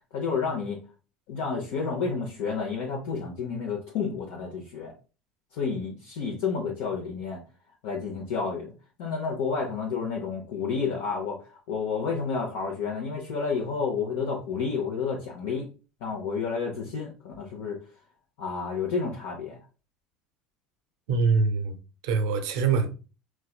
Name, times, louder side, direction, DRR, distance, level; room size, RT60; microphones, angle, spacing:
voice 1, 0.1-0.8 1.3-4.9 5.5-7.4 7.8-8.7 9.0-15.7 16.0-17.8 18.4-19.6, left 5 dB, 65° left, 0.7 m, -30 dB
voice 2, 21.1-21.8 22.0-22.9, right 4 dB, 70° right, 0.6 m, -24 dB
4.4 x 2.2 x 2.2 m
hypercardioid pair, 75°, 3 cm